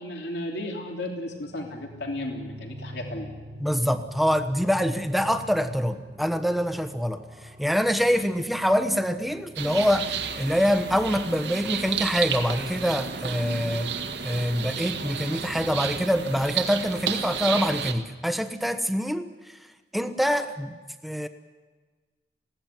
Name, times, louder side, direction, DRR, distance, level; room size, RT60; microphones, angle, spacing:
voice 1, 0.0-3.3, left 1 dB, 75° left, 2 dB, 3.1 m, -34 dB
sound 1, 1.2-15.8, equal, 25° right, 1.8 m, -45 dB
voice 2, 3.6-13.9 14.2-19.6 19.9-20.8 21.0-21.3, equal, ahead, 8 dB, 1.1 m, -25 dB
sound 2, 9.6-17.9, right 7 dB, 75° right, 1.8 m, -32 dB
21.0 x 16.5 x 9.3 m, 1.4 s
head